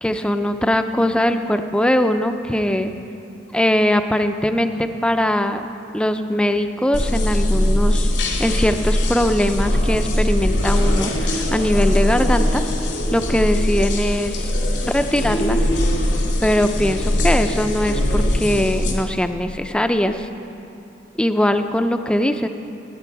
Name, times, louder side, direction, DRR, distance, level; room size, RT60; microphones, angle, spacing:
voice 1, 0.0-2.9 3.5-8.1 8.4-12.6 13.1-14.5 14.8-15.6 16.4-20.3 21.2-22.5, left 1 dB, 5° left, 8 dB, 0.4 m, -21 dB
sound 1, 6.9-18.9, left 1 dB, 85° left, 2.3 m, -20 dB
17.5 x 9.5 x 4.6 m, 2.7 s
head